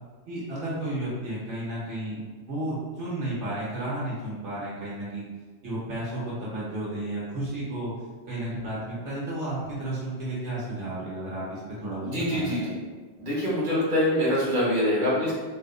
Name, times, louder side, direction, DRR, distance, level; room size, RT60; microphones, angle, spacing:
voice 1, 0.2-5.3 5.6-7.9 8.3-12.7, right 1 dB, 75° right, -8 dB, 1.4 m, -32 dB
voice 2, 12.0-12.6 13.2-15.3, left 1 dB, 40° right, -7 dB, 1.2 m, -24 dB
3.7 x 2.7 x 2.4 m, 1.4 s
omnidirectional pair, 1.2 m